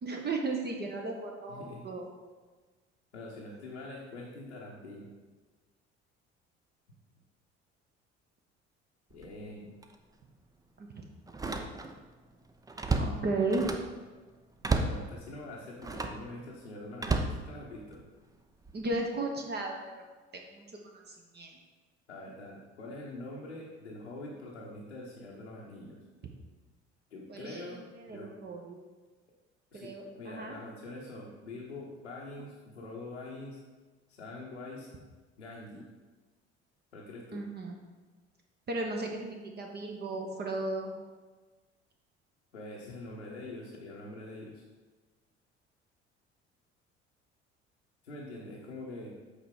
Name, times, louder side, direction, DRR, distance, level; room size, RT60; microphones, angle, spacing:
voice 1, 0.0-2.1 10.8-10.9 13.0-13.6 18.7-20.0 20.3-20.6 21.1-21.5 27.3-28.8 29.7-30.6 37.3-37.8 38.7-40.9, right 2 dB, 30° right, 1 dB, 1.0 m, -35 dB
voice 2, 1.5-1.8 3.1-5.1 9.1-9.7 14.8-18.1 22.1-26.0 27.1-27.8 28.1-28.3 29.7-33.6 34.1-34.9 35.4-35.8 36.9-37.4 42.5-44.6 48.0-49.1, left 2 dB, 80° left, -4 dB, 0.9 m, -44 dB
Slam, 9.1-9.4 9.8-9.9 11.3-12.1 12.4-14.0 14.6-15.1 15.8-16.3 17.0-18.1 18.6-19.0, right 3 dB, 10° right, 0.5 m, -32 dB
8.2 x 4.4 x 3.6 m, 1.3 s
figure-of-eight pair, 55°, 34 cm